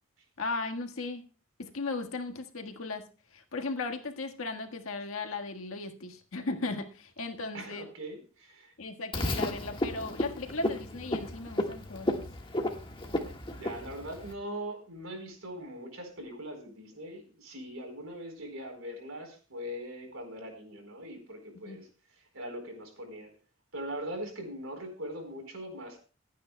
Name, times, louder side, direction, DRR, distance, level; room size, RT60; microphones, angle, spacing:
voice 1, 0.4-1.2 1.6-3.0 3.3-7.8 8.8-12.2 21.6-21.8, left 3 dB, 85° left, 4 dB, 1.6 m, -36 dB
voice 2, 7.5-8.7 13.5-21.9 22.2-23.3 23.7-26.0, equal, 80° right, 4 dB, 4.3 m, -41 dB
Frog, 9.1-14.3, left 1 dB, 25° left, 1.5 m, -33 dB
26.5 x 9.3 x 2.2 m, 0.36 s
head